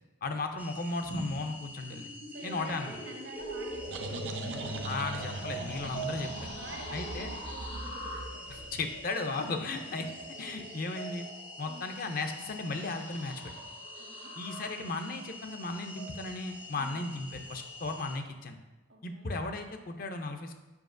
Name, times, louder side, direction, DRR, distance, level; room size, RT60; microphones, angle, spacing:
voice 1, 0.2-2.1 2.4-2.9 4.8-6.5 6.9-7.3 8.5-10.1 10.4-11.3 11.6-13.4 14.4-18.6 19.0-20.5, left 3 dB, 50° left, 6 dB, 0.5 m, -36 dB
sound 1, 0.6-18.2, left 2 dB, 10° right, 0.4 m, -47 dB
sound 2, 1.1-18.0, right 1 dB, 75° left, 1.5 m, -44 dB
voice 2, 2.3-4.6 6.5-8.0 11.6-11.8 14.0-14.3 16.7-17.1 18.9-19.3, right 2 dB, 90° right, 0 dB, 1.3 m, -48 dB
sound 3, 3.4-8.9, right 2 dB, 75° right, 0.5 m, -41 dB
7.1 x 5.4 x 2.6 m, 1.0 s
head